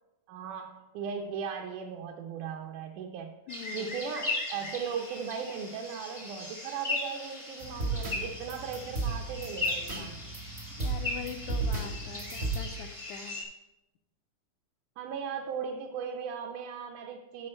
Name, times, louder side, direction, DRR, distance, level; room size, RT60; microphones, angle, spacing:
voice 1, 0.3-3.3 3.7-10.3 15.0-17.5, right 6 dB, 80° right, 2 dB, 2.1 m, -37 dB
voice 2, 3.5-4.0 10.8-13.4, left 8 dB, 80° left, 8 dB, 1.8 m, -42 dB
sound 1, 3.5-13.4, left 2 dB, 45° left, 0.4 m, -38 dB
sound 2, 7.6-12.6, right 3 dB, 60° right, 0.6 m, -35 dB
12.0 x 4.7 x 4.4 m, 0.99 s
omnidirectional pair, 3.6 m